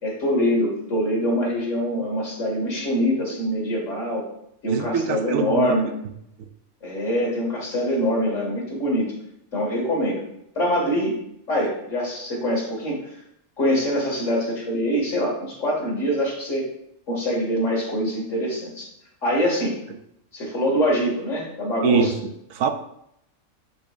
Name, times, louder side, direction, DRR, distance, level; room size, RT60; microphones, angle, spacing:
voice 1, 0.0-4.3 4.6-5.9 6.8-9.1 9.5-10.2 10.6-11.2 11.5-13.0 13.6-16.7 17.1-18.9 19.2-19.8 20.3-22.1, equal, 60° left, -2 dB, 2.3 m, -24 dB
voice 2, 4.7-5.8 21.8-22.2 22.5-22.7, right 7 dB, 75° right, 8 dB, 1.0 m, -23 dB
10.5 x 4.4 x 2.5 m, 0.76 s
omnidirectional pair, 1.4 m